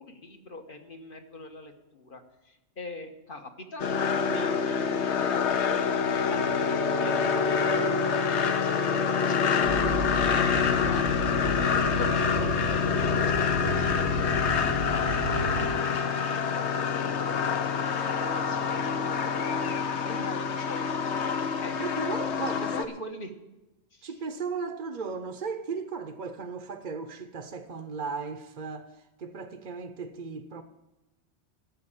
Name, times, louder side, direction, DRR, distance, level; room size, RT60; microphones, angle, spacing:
voice 1, 0.0-3.9 4.2-5.8 6.3-9.8 10.2-16.9 17.3-21.2 21.6-21.7 22.4-23.3 23.9-24.1, left 2 dB, 45° left, 1.4 m, -44 dB
sound 1, 3.8-22.8, left 6 dB, 70° left, 1.1 m, -26 dB
sound 2, 9.6-15.8, right 4 dB, 80° right, 1.2 m, -33 dB
voice 2, 10.5-10.9 21.8-22.9 24.0-28.9 29.2-30.6, right 5 dB, 45° right, 0.9 m, -36 dB
12.0 x 7.4 x 8.9 m
omnidirectional pair, 1.2 m